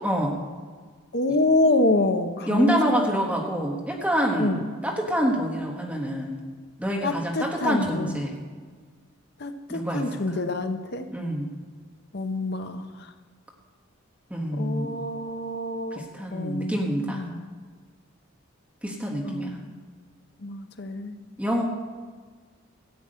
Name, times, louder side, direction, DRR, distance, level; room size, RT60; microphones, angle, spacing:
voice 1, 0.0-0.3 1.3-1.4 2.5-6.4 6.8-8.4 9.7-10.4 11.1-11.5 14.3-15.0 15.9-17.2 18.8-19.6 21.4-21.6, equal, 5° right, -1 dB, 1.3 m, -27 dB
voice 2, 1.1-3.0 4.4-4.6 7.0-8.2 9.4-11.1 12.1-12.9 14.6-16.0 16.3-17.4 19.2-19.7 20.4-21.1, left 2 dB, 50° left, 7 dB, 0.8 m, -26 dB
14.0 x 6.1 x 8.9 m, 1.5 s
head